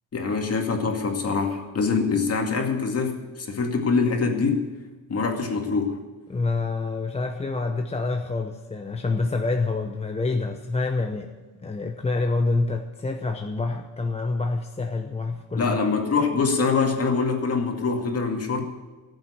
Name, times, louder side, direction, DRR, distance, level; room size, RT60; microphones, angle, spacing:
voice 1, 0.1-4.7 5.1-6.0 15.6-18.6, left 4 dB, 40° left, 3 dB, 2.2 m, -24 dB
voice 2, 6.3-11.3 11.6-15.8, left 3 dB, 15° left, 4 dB, 0.7 m, -27 dB
14.0 x 7.8 x 8.6 m, 1.3 s
cardioid pair, 130°, 37 cm